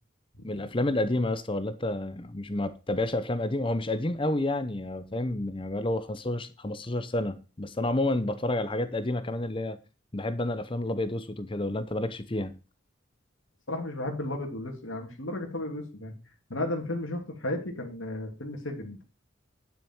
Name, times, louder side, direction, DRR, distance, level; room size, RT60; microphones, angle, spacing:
voice 1, 0.4-9.8 10.1-12.6, left 1 dB, 25° left, 0.7 m, -30 dB
voice 2, 13.7-16.1 16.5-19.0, left 1 dB, 70° left, 2.8 m, -34 dB
10.5 x 7.0 x 4.5 m
head